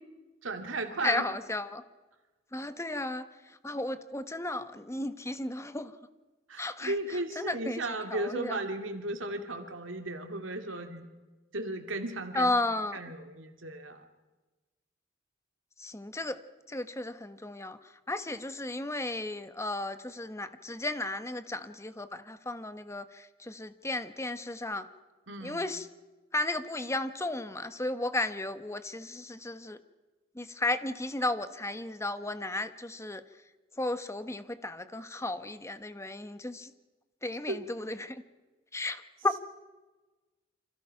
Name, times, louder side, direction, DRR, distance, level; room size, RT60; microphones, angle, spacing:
voice 1, 0.4-1.3 6.5-11.1 11.5-12.5 12.9-14.0 25.3-25.6 37.5-37.7 38.8-39.0, right 2 dB, 85° right, 5 dB, 2.6 m, -35 dB
voice 2, 1.0-1.8 2.5-3.2 3.6-5.9 6.6-6.9 7.4-7.8 8.1-8.6 12.3-13.0 15.8-16.4 16.7-17.8 18.1-24.8 25.4-25.9 26.3-29.8 30.3-33.2 33.8-36.7 37.2-38.2 38.7-39.3, left 2 dB, 15° left, 11 dB, 1.2 m, -34 dB
29.0 x 26.0 x 5.8 m, 1.2 s
head